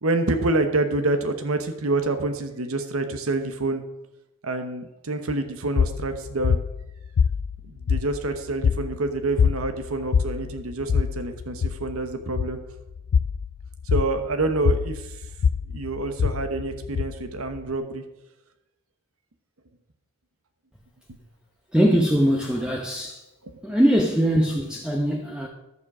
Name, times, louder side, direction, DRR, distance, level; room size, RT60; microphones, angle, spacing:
voice 1, 0.0-3.8 4.4-6.6 7.6-12.6 13.9-15.3 15.7-18.0 23.4-23.6, right 2 dB, 85° right, 7 dB, 1.0 m, -27 dB
sound 1, 5.8-17.8, left 6 dB, 70° left, 0.3 m, -25 dB
voice 2, 21.7-23.2 23.6-25.5, equal, 5° right, 0 dB, 0.8 m, -21 dB
11.0 x 7.3 x 6.1 m, 0.93 s
head